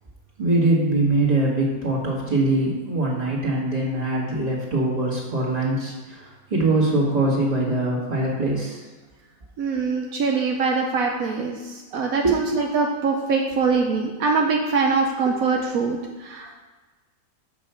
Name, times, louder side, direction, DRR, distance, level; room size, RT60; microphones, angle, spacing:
voice 1, 0.4-8.8 12.2-12.4, right 2 dB, 25° right, -5 dB, 2.1 m, -22 dB
voice 2, 9.6-16.5, right 4 dB, 75° right, 1 dB, 1.2 m, -23 dB
6.2 x 5.4 x 6.9 m, 1.3 s
omnidirectional pair, 1.5 m